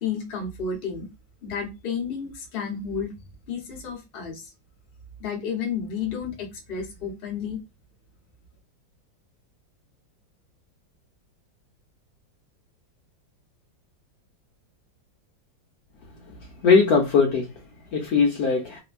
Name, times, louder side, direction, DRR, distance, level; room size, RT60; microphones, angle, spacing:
voice 1, 0.0-1.1 1.4-3.2 3.5-4.5 5.2-7.6, left 6 dB, 50° left, 0.7 m, -31 dB
voice 2, 16.3-18.8, left 5 dB, 70° left, 0.9 m, -21 dB
3.0 x 2.1 x 2.4 m
omnidirectional pair, 2.0 m